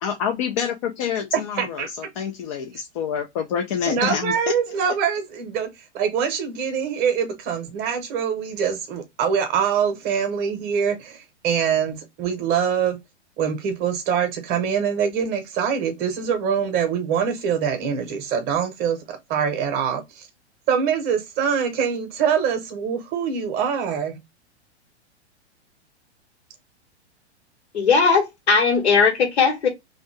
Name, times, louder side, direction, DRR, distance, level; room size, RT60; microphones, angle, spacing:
voice 1, 0.0-4.3, left 8 dB, 30° left, 0.4 m, -27 dB
voice 2, 1.6-1.9 3.9-13.0 13.4-20.3 20.7-24.2, right 7 dB, 30° right, 0.8 m, -24 dB
voice 3, 27.7-29.7, left 5 dB, 70° left, 1.6 m, -18 dB
2.7 x 2.5 x 3.1 m
figure-of-eight pair, 105°, 34 cm